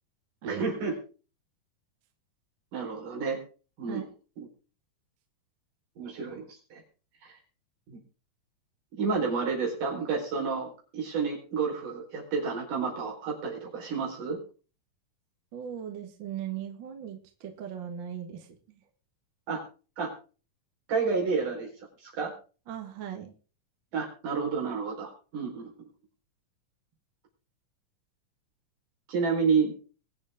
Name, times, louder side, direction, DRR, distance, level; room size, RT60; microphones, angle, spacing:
voice 1, 0.4-0.9 2.7-3.4 3.8-4.0 4.4-4.5 6.0-6.8 7.2-7.3 7.9-8.0 8.9-10.7 10.9-14.4 19.5-19.6 20.0-20.1 20.9-21.7 22.0-22.3 23.9-25.7 29.1-29.7, right 5 dB, 80° right, -1 dB, 5.9 m, -30 dB
voice 2, 15.5-18.8 22.7-23.3, right 9 dB, 45° right, 5 dB, 1.9 m, -38 dB
22.5 x 7.9 x 3.7 m, 0.37 s
omnidirectional pair, 3.7 m